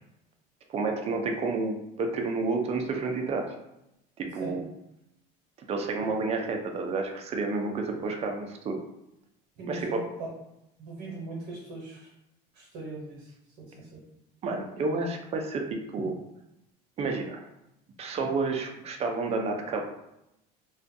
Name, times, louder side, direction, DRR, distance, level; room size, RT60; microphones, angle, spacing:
voice 1, 0.7-3.6 4.2-4.6 5.7-8.8 9.7-10.0 14.4-16.2 17.0-17.4 18.0-19.8, right 3 dB, 35° right, 3 dB, 0.4 m, -30 dB
voice 2, 9.6-10.3 10.8-12.1 12.5-13.3 13.6-14.0, right 2 dB, 60° right, -3 dB, 0.9 m, -40 dB
2.4 x 2.2 x 2.6 m, 0.86 s
supercardioid pair, 110°, 19 cm